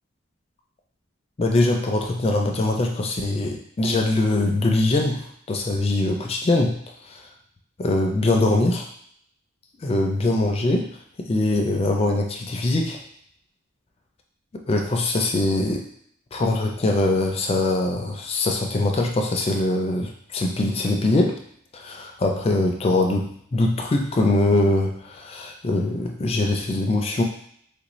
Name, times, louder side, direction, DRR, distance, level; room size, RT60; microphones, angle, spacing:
voice 1, 1.4-6.8 7.1-7.2 7.8-8.8 9.8-10.9 11.2-13.0 14.7-15.8 16.3-21.4 21.7-27.2, left 2 dB, 30° left, 2 dB, 0.3 m, -22 dB
3.4 x 2.5 x 3.0 m, 0.66 s
head